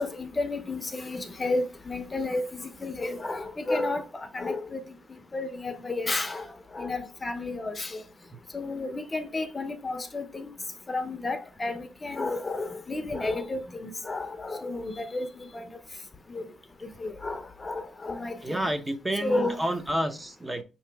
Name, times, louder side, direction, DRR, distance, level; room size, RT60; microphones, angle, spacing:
voice 1, 0.0-4.0 4.3-4.8 5.3-6.5 6.7-8.0 8.5-10.5 10.9-15.3 15.5-15.7 16.3-16.5 16.8-18.6 19.2-19.6, left 2 dB, 25° left, 0.6 m, -32 dB
voice 2, 18.4-20.6, right 1 dB, 15° right, 0.6 m, -29 dB
5.4 x 2.9 x 3.4 m
cardioid pair, 90°, 0 cm